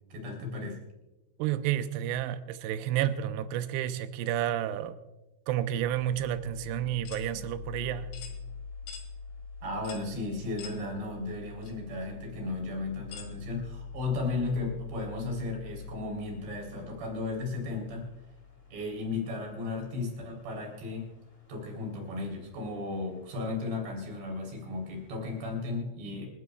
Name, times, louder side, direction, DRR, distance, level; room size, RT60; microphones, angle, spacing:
voice 1, 0.1-0.8 9.6-18.1 18.7-21.1 21.5-26.3, left 3 dB, 60° right, 0 dB, 5.4 m, -35 dB
voice 2, 1.4-5.0 5.5-8.1, right 11 dB, 85° right, 10 dB, 2.4 m, -30 dB
sound 1, 5.7-25.6, left 4 dB, 25° left, 1.6 m, -46 dB
sound 2, 7.1-7.3 8.1-8.4 8.9-9.1 9.9-10.1 10.6-10.8 11.6-11.7 13.1-13.3, left 7 dB, 85° left, 4.1 m, -45 dB
28.0 x 12.5 x 2.3 m, 1.0 s
omnidirectional pair, 5.5 m